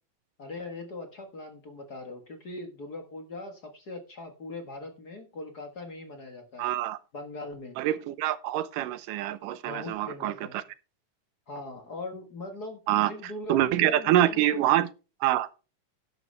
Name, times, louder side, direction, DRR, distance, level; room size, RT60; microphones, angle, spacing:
voice 1, 0.4-6.7 7.1-7.8 9.6-10.6 11.5-14.6, left 2 dB, 40° left, 1.5 m, -40 dB
voice 2, 6.6-7.0 7.8-10.6 12.9-13.1 13.5-14.9 15.2-15.5, right 13 dB, 85° right, 2.4 m, -25 dB
12.0 x 11.0 x 3.4 m
omnidirectional pair, 3.7 m